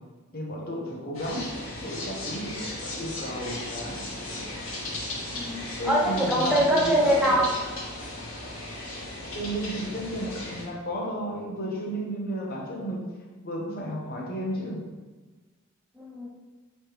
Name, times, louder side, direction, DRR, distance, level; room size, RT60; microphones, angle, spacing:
voice 1, 0.3-1.5 1.8-4.1 5.8-7.4 9.2-13.0 13.4-14.8, equal, 45° left, -2 dB, 0.8 m, -33 dB
sound 1, 1.1-10.6, left 1 dB, 80° left, 1.2 m, -36 dB
voice 2, 5.3-7.5 16.0-16.3, right 1 dB, 5° right, -4 dB, 0.4 m, -23 dB
4.7 x 3.3 x 3.0 m, 1.3 s
head